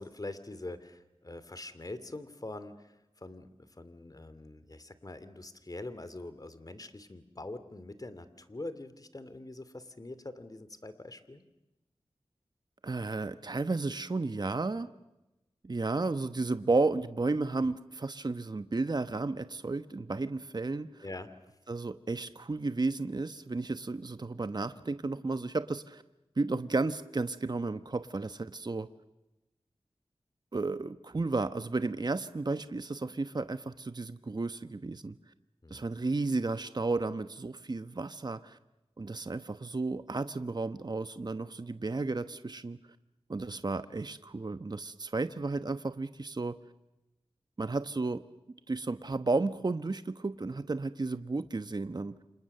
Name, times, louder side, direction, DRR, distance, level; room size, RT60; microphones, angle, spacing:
voice 1, 0.0-3.5 3.8-11.4 21.0-21.3 35.6-35.8, left 2 dB, 40° left, 12 dB, 2.6 m, -44 dB
voice 2, 12.8-14.9 15.6-21.1 21.7-26.0 26.4-28.9 30.5-35.2 35.7-38.6 39.0-42.8 43.3-46.5 47.6-48.2 48.7-52.2, right 3 dB, 45° right, 11 dB, 1.0 m, -33 dB
29.5 x 26.5 x 6.7 m, 0.97 s
cardioid pair, 50°, 10 cm